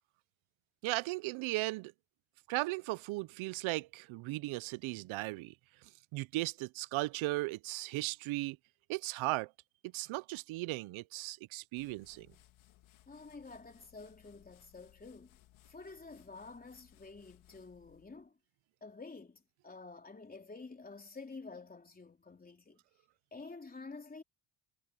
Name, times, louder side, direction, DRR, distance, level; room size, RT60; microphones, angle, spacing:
voice 1, 0.8-1.9 2.5-5.5 6.1-8.6 8.9-9.5 9.9-12.3, right 20 dB, 80° right, 0.6 m, -36 dB
sound 1, 11.8-18.3, left 14 dB, 80° left, 3.2 m, -64 dB
voice 2, 13.1-15.4 15.7-18.4 18.8-22.8 23.3-24.2, left 3 dB, 20° left, 3.6 m, -50 dB
cardioid pair, 125°, 47 cm